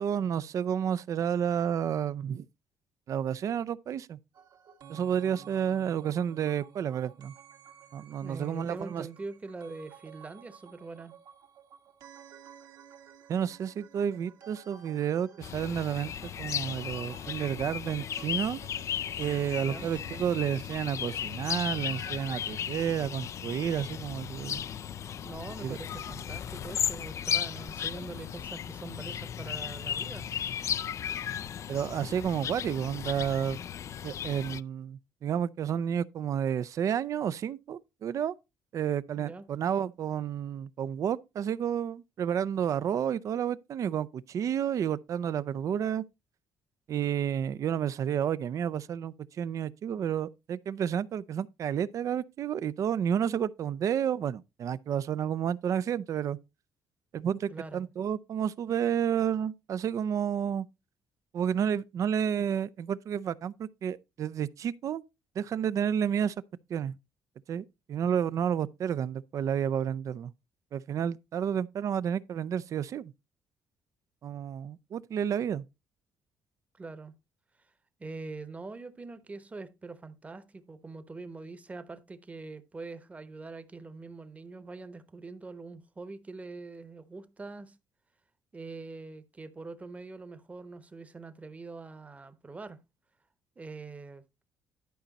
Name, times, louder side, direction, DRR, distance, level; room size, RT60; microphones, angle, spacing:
voice 1, 0.0-2.5 3.1-4.2 4.9-7.3 7.9-9.1 13.3-18.6 19.2-24.6 25.6-25.8 31.7-33.6 34.0-38.3 38.7-46.0 46.9-56.4 57.1-60.7 61.3-65.0 65.4-66.3 66.7-66.9 67.5-70.3 70.7-73.1 74.2-75.7, right 8 dB, 50° right, 0.5 m, -31 dB
sound 1, 4.3-22.6, right 8 dB, 70° right, 1.9 m, -53 dB
voice 2, 8.2-11.1 19.6-19.9 25.2-30.3 39.2-39.5 57.5-57.8 76.7-77.1 78.0-87.7 88.5-92.8 93.6-94.2, right 3 dB, 20° right, 1.0 m, -43 dB
sound 2, 15.4-34.6, left 9 dB, 50° left, 0.4 m, -35 dB
11.5 x 5.2 x 4.1 m
cardioid pair, 115°, 7 cm